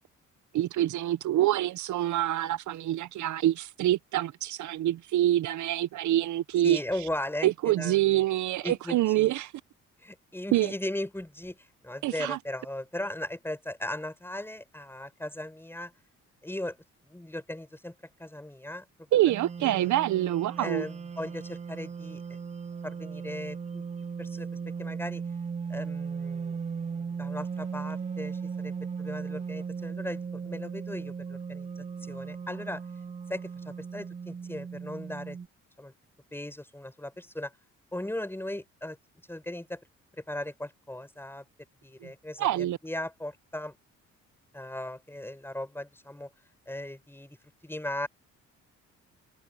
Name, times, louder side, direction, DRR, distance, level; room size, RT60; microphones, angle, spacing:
voice 1, 0.5-6.8 7.4-9.5 10.5-10.7 12.0-12.4 19.1-20.8 42.0-42.1 42.4-42.8, right 14 dB, 70° right, 0.7 m, -26 dB
voice 2, 6.6-8.2 8.6-9.3 10.0-15.9 16.4-16.8 17.0-17.9 18.2-19.1 19.6-19.9 20.6-22.4 22.8-23.9 24.2-25.2 25.7-31.7 32.0-32.8 33.3-35.4 35.8-35.9 36.3-37.5 37.9-39.0 39.3-39.8 40.3-41.5 41.8-43.8 44.5-46.3 46.7-47.4 47.6-48.1, left 1 dB, 10° left, 5.2 m, -38 dB
sound 1, 19.3-35.5, right 5 dB, 25° right, 0.5 m, -37 dB
cardioid pair, 90°, 30 cm